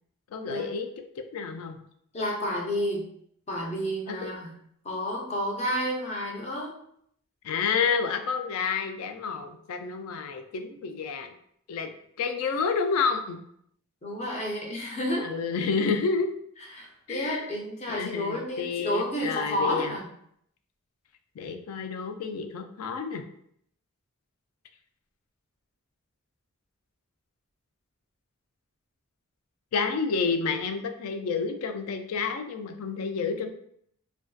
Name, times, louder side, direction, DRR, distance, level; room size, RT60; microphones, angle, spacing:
voice 1, 0.3-0.9 1.2-1.8 4.1-4.3 7.4-11.3 11.7-11.9 12.2-13.4 15.2-16.4 17.1-17.5 17.9-20.0 21.4-23.2 29.7-33.5, left 5 dB, 80° left, 7 dB, 0.3 m, -29 dB
voice 2, 2.1-3.1 3.5-4.5 4.8-6.8 14.0-15.3 16.7-20.1, equal, 30° left, -1 dB, 0.6 m, -30 dB
2.5 x 2.2 x 2.3 m, 0.69 s
head